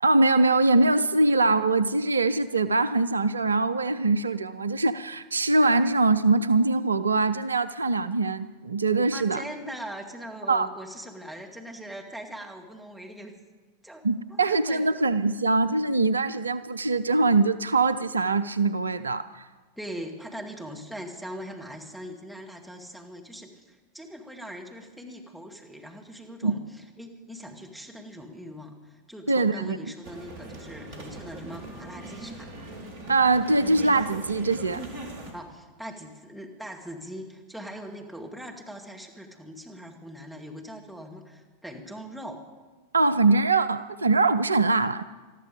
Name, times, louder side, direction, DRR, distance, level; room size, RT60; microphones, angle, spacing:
voice 1, 0.0-9.4 10.5-10.7 14.0-19.5 26.4-26.5 29.3-29.8 33.1-34.8 42.9-45.0, right 3 dB, 75° right, 13 dB, 0.5 m, -23 dB
voice 2, 9.1-13.3 13.8-15.4 19.8-32.5 35.3-42.5, equal, ahead, -1 dB, 2.3 m, -41 dB
sound 1, 30.0-35.3, right 2 dB, 55° right, 3.0 m, -40 dB
20.0 x 13.5 x 5.1 m, 1.4 s
figure-of-eight pair, 90°, 0 cm